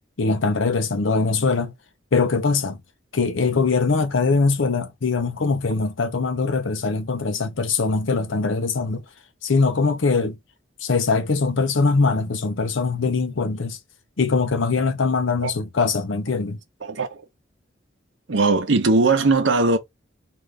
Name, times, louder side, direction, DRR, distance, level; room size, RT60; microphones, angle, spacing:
voice 1, 0.2-1.7 2.1-2.8 3.1-9.0 9.4-10.4 10.8-13.8 14.2-16.6, left 4 dB, 80° left, 0.7 m, -22 dB
voice 2, 16.8-17.2 18.3-19.8, right 3 dB, 70° right, 0.8 m, -19 dB
3.7 x 2.5 x 3.3 m
head